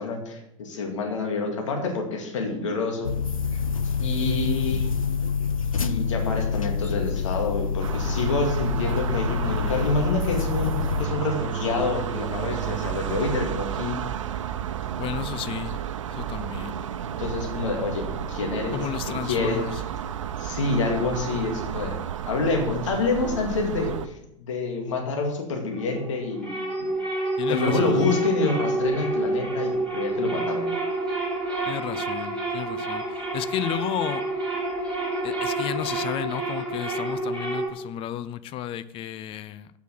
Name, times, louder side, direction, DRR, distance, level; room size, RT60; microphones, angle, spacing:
voice 1, 0.0-3.1 4.0-4.9 5.8-14.0 17.0-18.9 19.2-19.6 20.4-21.9 22.3-26.9 27.5-30.7, left 3 dB, 65° left, 2 dB, 2.1 m, -27 dB
sound 1, 3.0-11.1, left 5 dB, 85° left, 0.6 m, -27 dB
sound 2, 7.8-24.1, right 9 dB, 70° right, 0.6 m, -32 dB
voice 2, 15.0-15.8 16.1-16.8 18.7-19.7 27.4-28.2 31.7-33.0 33.3-34.3 35.2-39.7, left 11 dB, 30° left, 15 dB, 0.5 m, -32 dB
sound 3, 25.7-37.7, right 2 dB, 5° left, 2.7 m, -28 dB
8.1 x 5.9 x 6.1 m, 0.79 s
figure-of-eight pair, 85°, 17 cm